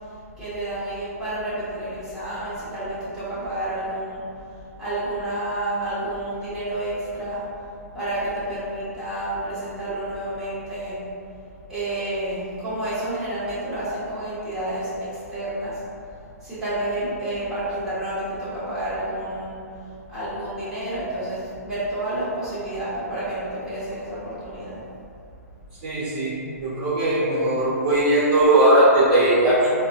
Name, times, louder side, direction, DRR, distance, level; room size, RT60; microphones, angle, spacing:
voice 1, 0.0-7.4 7.9-11.0 11.7-15.8 16.4-24.8, right 1 dB, 5° right, -15 dB, 1.5 m, -30 dB
voice 2, 25.8-29.7, right 1 dB, 40° right, -10 dB, 1.0 m, -19 dB
4.1 x 2.3 x 2.6 m, 2.5 s
hypercardioid pair, 135°, 9 cm